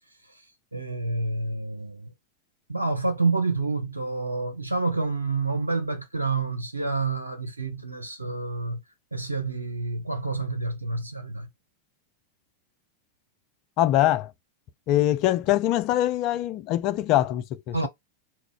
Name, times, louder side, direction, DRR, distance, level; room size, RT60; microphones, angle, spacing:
voice 1, 0.7-2.1 2.7-8.8 9.1-11.5 17.7-17.9, right 3 dB, 85° right, 0.6 m, -28 dB
voice 2, 13.8-14.3 14.9-17.9, left 13 dB, 40° left, 0.3 m, -23 dB
2.3 x 2.2 x 3.6 m
figure-of-eight pair, 90°, 0 cm